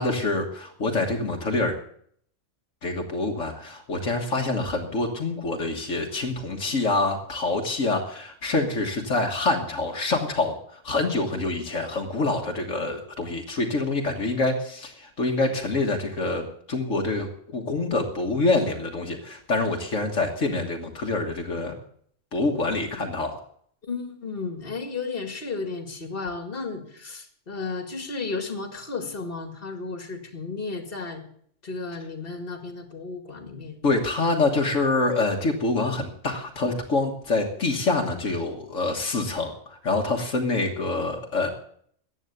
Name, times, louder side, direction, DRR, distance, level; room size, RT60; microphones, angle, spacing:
voice 1, 0.0-1.8 2.8-21.8 22.3-23.4 33.8-41.5, left 2 dB, 75° left, 2 dB, 1.9 m, -26 dB
voice 2, 23.8-31.2 31.6-33.8, left 4 dB, 45° left, 6 dB, 2.2 m, -33 dB
14.5 x 9.1 x 8.1 m, 0.63 s
omnidirectional pair, 1.3 m